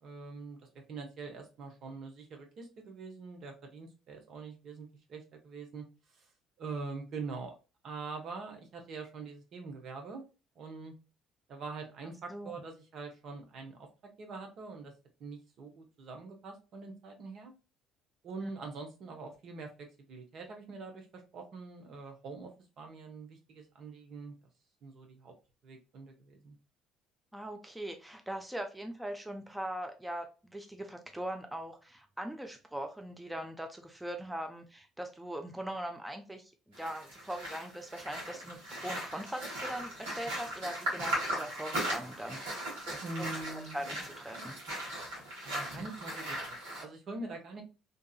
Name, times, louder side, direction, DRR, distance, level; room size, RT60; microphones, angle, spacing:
voice 1, 0.0-5.8 6.2-6.3 6.6-7.5 7.8-10.2 10.6-10.9 11.5-14.9 15.2-17.5 18.2-24.3 24.8-25.3 25.6-26.6 43.0-43.8 45.4-47.6, right 3 dB, 60° right, 4 dB, 0.8 m, -44 dB
voice 2, 27.3-36.5 36.8-42.4 42.9-43.0 43.5-44.5, right 1 dB, 10° right, 5 dB, 0.5 m, -41 dB
sound 1, 36.7-46.8, right 1 dB, 80° right, 1.4 m, -38 dB
2.7 x 2.4 x 2.3 m, 0.32 s
hypercardioid pair, 65°, 0 cm